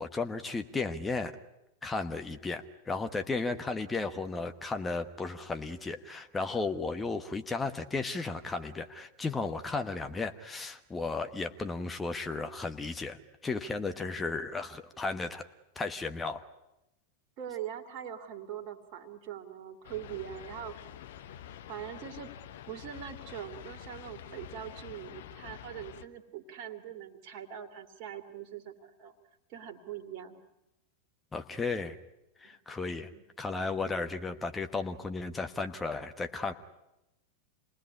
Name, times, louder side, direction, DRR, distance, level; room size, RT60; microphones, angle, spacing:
voice 1, 0.0-1.3 1.8-15.5 15.7-16.4 31.3-31.9 32.4-33.1 33.4-36.5, left 3 dB, 15° left, 6 dB, 1.3 m, -34 dB
voice 2, 17.4-20.7 21.7-22.3 22.7-29.1 29.5-30.4 33.1-33.2, right 9 dB, 45° right, 6 dB, 2.6 m, -42 dB
sound 1, 19.8-26.1, left 10 dB, 55° left, 1.1 m, -47 dB
28.0 x 19.5 x 9.8 m, 0.94 s
figure-of-eight pair, 90°, 0 cm